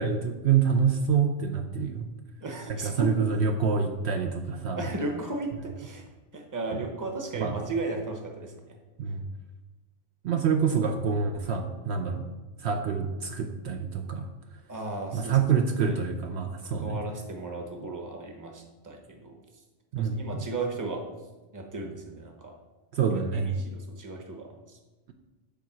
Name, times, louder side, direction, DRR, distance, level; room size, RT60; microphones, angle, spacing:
voice 1, 0.0-2.1 2.7-4.8 7.4-7.6 9.0-9.2 10.2-12.3 12.6-14.3 15.1-17.0 19.9-20.3 22.9-23.6, right 6 dB, 65° right, 5 dB, 0.8 m, -26 dB
voice 2, 2.4-3.3 4.8-6.0 6.3-8.8 14.7-15.4 15.8-16.0 16.8-19.4 20.0-21.0 21.5-22.5 23.1-23.2 23.5-24.8, right 2 dB, 15° right, 2 dB, 0.9 m, -35 dB
7.0 x 4.6 x 5.9 m, 1.2 s
omnidirectional pair, 1.3 m